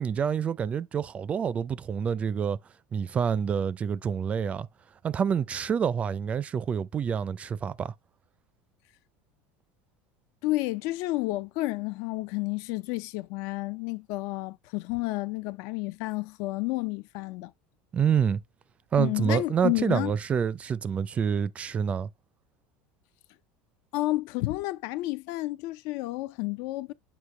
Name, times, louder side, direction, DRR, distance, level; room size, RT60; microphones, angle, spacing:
voice 1, 0.0-2.6 2.9-4.7 5.0-7.9 17.9-18.4 18.9-22.1, right 7 dB, 25° right, 0.4 m, -27 dB
voice 2, 10.4-17.5 19.0-20.2 23.9-26.9, left 19 dB, 60° left, 0.5 m, -31 dB
8.1 x 2.7 x 4.8 m
supercardioid pair, 145°, 5 cm